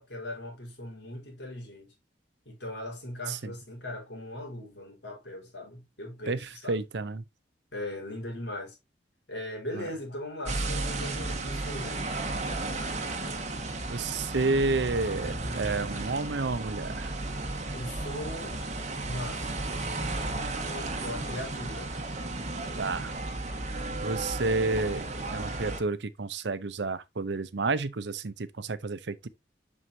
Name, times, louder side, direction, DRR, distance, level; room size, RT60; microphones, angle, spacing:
voice 1, 0.0-1.9 2.4-6.7 7.7-8.8 9.3-12.0 17.7-18.6 19.0-19.7 20.6-22.0, left 1 dB, 80° left, 4.4 m, -39 dB
voice 2, 6.3-7.2 9.7-9.9 13.9-17.1 22.8-23.2 23.9-29.3, right 3 dB, 80° right, 0.7 m, -30 dB
sound 1, 10.4-25.8, right 2 dB, 40° right, 1.5 m, -34 dB
7.8 x 6.4 x 2.7 m
head